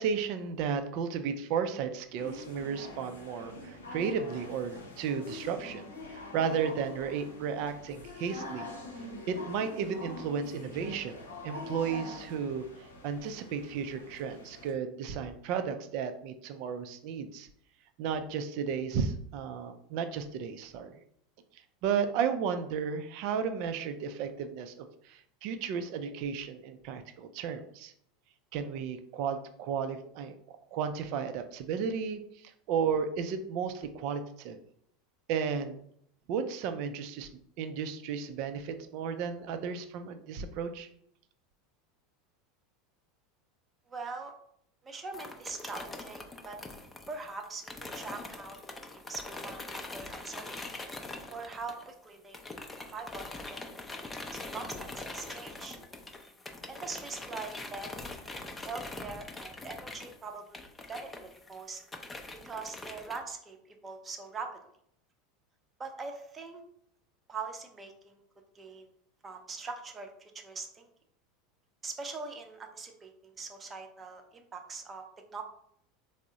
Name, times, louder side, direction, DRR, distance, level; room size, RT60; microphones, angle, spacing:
voice 1, 0.0-8.7 9.3-12.7 13.0-17.5 18.0-21.0 21.8-27.9 28.5-34.6 35.3-35.8 36.3-37.3 37.6-40.9, right 6 dB, 60° right, 8 dB, 0.4 m, -34 dB
sound 1, 2.2-14.7, left 2 dB, 85° left, 0.6 m, -45 dB
voice 2, 43.9-44.3 44.8-46.6 47.1-48.6 48.9-50.6 51.3-52.4 52.9-53.7 54.3-55.8 56.7-57.9 58.6-61.1 61.5-61.8 62.4-64.5 65.8-66.6 67.3-68.2 68.5-68.9 69.2-70.9 71.8-75.0 75.3-75.4, right 4 dB, 25° right, 4 dB, 0.7 m, -42 dB
sound 2, 45.1-52.0 52.3-63.2, left 2 dB, 15° left, 0.5 m, -43 dB
3.5 x 2.0 x 3.8 m, 0.68 s
hypercardioid pair, 85°, 0 cm